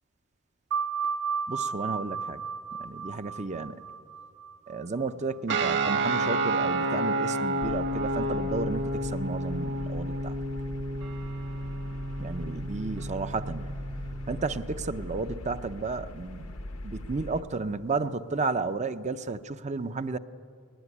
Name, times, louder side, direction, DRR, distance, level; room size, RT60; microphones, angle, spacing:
sound 1, 0.7-5.9, right 6 dB, 80° right, 3.3 m, -34 dB
voice 1, 1.5-2.4 2.8-3.8 4.7-10.3 12.2-13.8 14.3-16.5 16.8-20.2, right 3 dB, 30° right, 11 dB, 0.6 m, -32 dB
sound 2, 5.5-14.4, right 2 dB, 55° right, 1.4 m, -30 dB
sound 3, 7.6-17.4, left 1 dB, 65° left, 1.0 m, -40 dB
20.5 x 20.5 x 9.8 m, 2.4 s
head